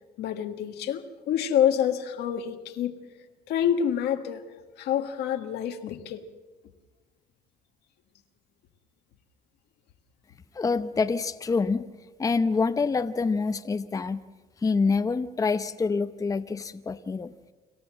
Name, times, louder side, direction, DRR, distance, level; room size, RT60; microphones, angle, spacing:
voice 1, 0.2-2.9 3.5-4.4 4.8-6.2, left 9 dB, 80° left, 6 dB, 1.6 m, -27 dB
voice 2, 10.5-11.9 12.2-14.2 14.6-17.3, left 4 dB, 20° left, 10 dB, 0.7 m, -26 dB
26.5 x 14.0 x 7.5 m, 1.3 s
cardioid pair, 110°, 17 cm